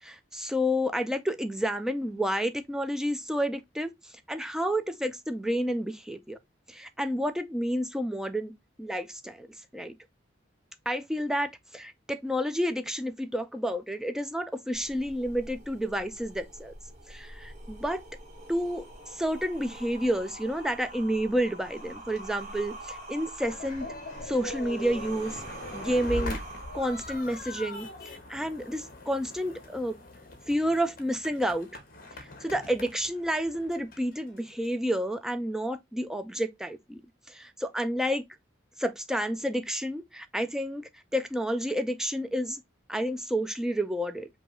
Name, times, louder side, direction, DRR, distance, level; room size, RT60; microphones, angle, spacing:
voice 1, 0.0-3.9 4.3-6.4 6.7-8.5 8.8-9.5 9.7-10.0 10.9-16.7 17.1-18.0 18.5-23.9 24.2-25.4 25.7-26.4 26.7-30.0 30.5-31.7 32.4-37.0 37.3-38.2 38.8-42.6 42.9-44.3, equal, 5° right, 0.3 m, -30 dB
sound 1, 14.7-27.7, right 1 dB, 35° right, 1.2 m, -45 dB
sound 2, 23.5-34.7, left 1 dB, 45° left, 0.9 m, -41 dB
5.2 x 2.3 x 3.0 m
head